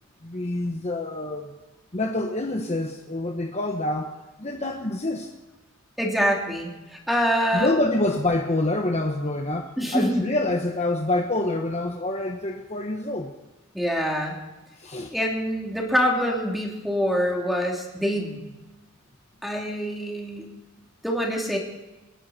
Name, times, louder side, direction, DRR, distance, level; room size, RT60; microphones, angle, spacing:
voice 1, 0.2-1.5 1.9-4.1 4.4-5.3 7.5-13.3 14.8-15.1, left 2 dB, 35° left, 3 dB, 1.2 m, -26 dB
voice 2, 6.0-7.7 9.8-10.2 13.7-14.4 15.1-18.5 19.4-20.5 21.0-21.6, equal, ahead, -1 dB, 3.1 m, -25 dB
27.0 x 11.0 x 4.3 m, 1.1 s
head